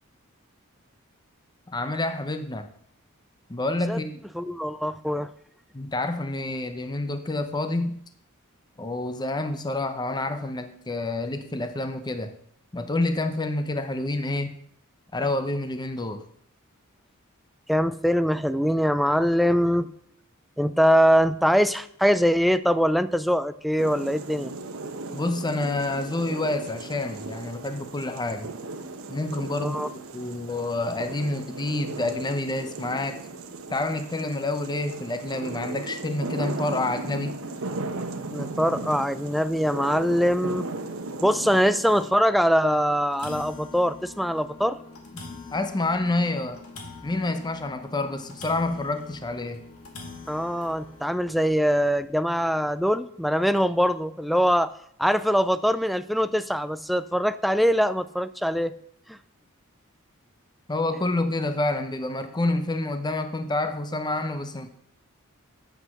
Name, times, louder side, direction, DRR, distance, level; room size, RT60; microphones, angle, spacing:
voice 1, 1.7-2.7 3.5-4.2 5.7-8.0 8.8-12.3 12.7-14.5 15.1-16.2 25.1-28.5 29.1-33.2 33.7-37.4 45.1-45.2 45.5-46.6 47.0-49.7 60.7-64.7, left 2 dB, 20° left, 8 dB, 0.7 m, -28 dB
voice 2, 4.3-5.3 17.7-19.9 20.6-24.5 29.6-29.9 38.3-40.7 41.2-44.8 50.3-54.7 55.0-58.7 59.1-59.2, equal, ahead, 14 dB, 0.4 m, -23 dB
sound 1, 23.8-42.1, right 2 dB, 70° right, 1.1 m, -36 dB
sound 2, 37.4-37.5 38.0-38.1 39.1-39.2 39.8-39.9 40.3-40.4 40.9-41.0 42.1-42.2 42.6-42.7 42.9-52.1, left 3 dB, 90° left, 2.1 m, -44 dB
9.1 x 7.7 x 6.5 m, 0.66 s
head